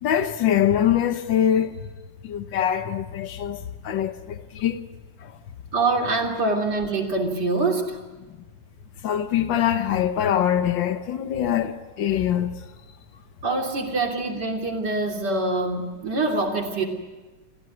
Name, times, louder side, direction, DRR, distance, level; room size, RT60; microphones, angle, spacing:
voice 1, 0.0-1.7 2.2-4.8 5.2-5.3 9.0-12.5, left 10 dB, 85° left, 1.8 m, -23 dB
voice 2, 5.7-8.0 13.4-16.9, right 3 dB, 65° right, 3.7 m, -24 dB
28.5 x 16.5 x 9.5 m
omnidirectional pair, 2.0 m